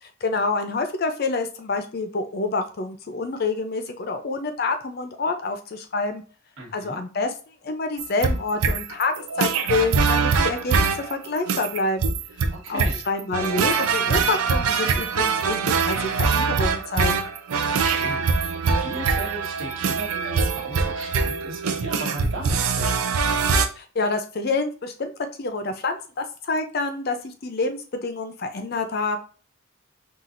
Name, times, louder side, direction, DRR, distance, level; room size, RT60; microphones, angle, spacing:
voice 1, 0.0-6.2 6.7-12.1 12.7-17.3 23.8-25.1 25.4-29.2, left 3 dB, 45° left, 7 dB, 0.5 m, -27 dB
voice 2, 6.6-7.0 12.5-13.0 17.5-23.0, right 2 dB, 70° right, -3 dB, 1.4 m, -36 dB
sound 1, 8.0-23.7, right 5 dB, 90° right, 0.5 m, -23 dB
5.7 x 2.4 x 2.5 m, 0.38 s
head